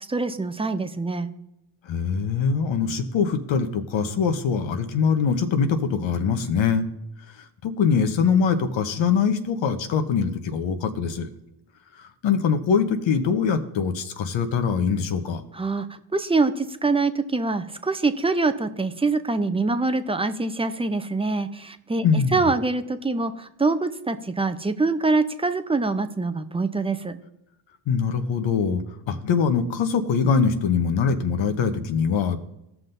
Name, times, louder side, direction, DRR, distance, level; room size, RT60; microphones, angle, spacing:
voice 1, 0.1-1.3 15.5-15.9 16.1-27.2, right 3 dB, 10° right, 10 dB, 0.6 m, -24 dB
voice 2, 1.9-6.9 7.6-11.3 12.2-15.4 22.0-22.5 27.9-32.4, left 6 dB, 60° left, 8 dB, 1.1 m, -23 dB
16.5 x 5.9 x 2.7 m, 0.84 s
supercardioid pair, 75°, 50 cm